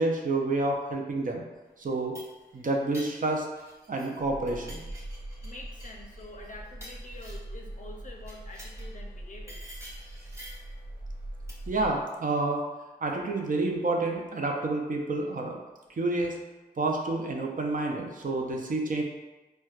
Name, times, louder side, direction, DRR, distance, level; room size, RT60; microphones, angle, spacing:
voice 1, 0.0-1.4 1.8-2.1 2.5-3.5 3.9-4.8 11.7-12.6 13.0-15.6 16.0-16.4 16.8-19.0, right 2 dB, 50° right, 1 dB, 0.6 m, -29 dB
sound 1, 1.8-4.2 4.5-7.6 8.2-9.0 9.5-10.7 11.5-11.8, equal, 15° right, 1.2 m, -49 dB
sound 2, 4.2-12.0, right 1 dB, 65° right, 1.5 m, -42 dB
voice 2, 5.4-9.6, left 2 dB, 45° left, 1 dB, 0.6 m, -46 dB
4.3 x 2.2 x 2.4 m, 1.1 s
cardioid pair, 50°, 18 cm